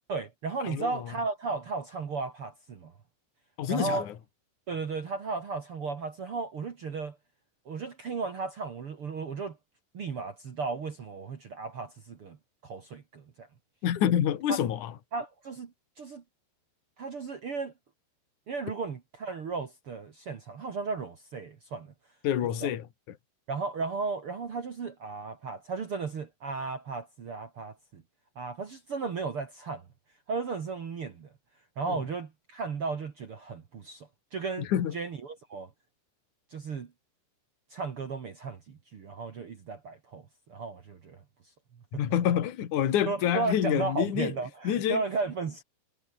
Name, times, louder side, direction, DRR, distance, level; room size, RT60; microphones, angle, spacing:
voice 1, 0.1-2.9 3.7-4.1 4.7-7.2 7.6-9.6 9.9-12.4 12.6-13.5 14.5-14.6 15.1-15.7 16.0-16.2 17.0-17.7 18.5-21.9 22.6-22.7 23.5-28.0 28.3-29.8 30.3-31.3 31.8-34.7 34.9-35.7 36.5-36.9 37.7-40.2 40.5-41.2 43.1-45.6, right 4 dB, 70° right, 1.3 m, -35 dB
voice 2, 0.6-1.0 3.6-4.1 13.8-14.9 22.2-23.2 31.9-32.0 34.6-35.0 41.9-44.3 44.6-45.0, left 10 dB, 50° left, 2.8 m, -27 dB
omnidirectional pair, 5.7 m